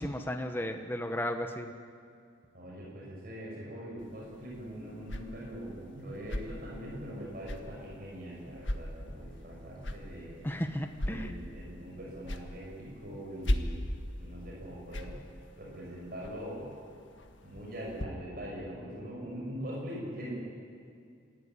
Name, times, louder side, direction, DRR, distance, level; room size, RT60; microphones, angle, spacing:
voice 1, 0.0-1.7 10.4-11.3, left 1 dB, 10° left, 5 dB, 1.1 m, -34 dB
voice 2, 2.5-10.4 11.0-15.1 15.6-16.7 17.4-20.3, equal, 50° right, -3 dB, 6.8 m, -42 dB
sound 1, 4.0-18.1, left 1 dB, 75° left, 1.7 m, -40 dB
26.5 x 15.5 x 9.8 m, 2.3 s
head